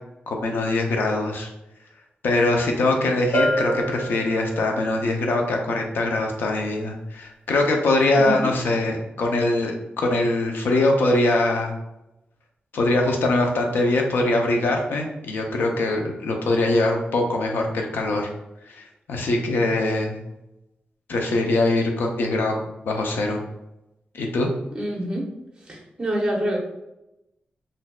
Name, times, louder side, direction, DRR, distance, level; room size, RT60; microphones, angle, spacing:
voice 1, 0.3-1.5 2.2-11.8 12.7-18.3 18.7-20.2 21.1-23.4 24.1-24.5, left 2 dB, 85° left, 2 dB, 0.6 m, -22 dB
Bell, 3.3-4.9, equal, 65° left, 1.0 m, -26 dB
voice 2, 8.1-8.5 24.7-25.3 25.7-26.6, right 1 dB, 25° right, -1 dB, 0.8 m, -26 dB
4.2 x 2.6 x 2.3 m, 0.91 s
wide cardioid pair, 150°, 3 cm